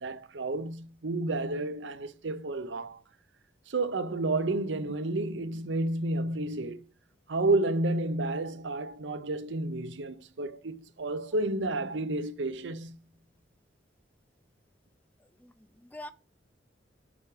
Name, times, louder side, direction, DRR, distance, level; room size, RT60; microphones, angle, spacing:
voice 1, 0.0-3.0 3.7-6.8 7.3-13.0, right 2 dB, 80° right, 0.7 m, -31 dB
voice 2, 15.2-16.1, left 1 dB, 10° left, 0.5 m, -46 dB
7.2 x 4.8 x 4.9 m
head